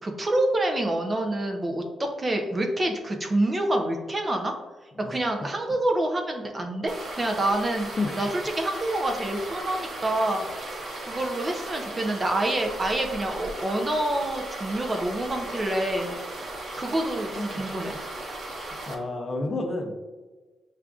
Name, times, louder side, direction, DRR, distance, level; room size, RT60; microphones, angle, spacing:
voice 1, 0.0-1.8 2.2-4.5 5.1-8.3 8.6-10.4 11.0-16.1 16.8-18.0, right 1 dB, 20° right, 3 dB, 0.4 m, -27 dB
sound 1, 6.9-18.9, right 2 dB, 45° right, 0.8 m, -37 dB
voice 2, 17.3-17.6 18.9-19.9, left 2 dB, 25° left, 2 dB, 0.5 m, -30 dB
7.1 x 2.4 x 2.3 m, 1.3 s
wide cardioid pair, 160°, 0 cm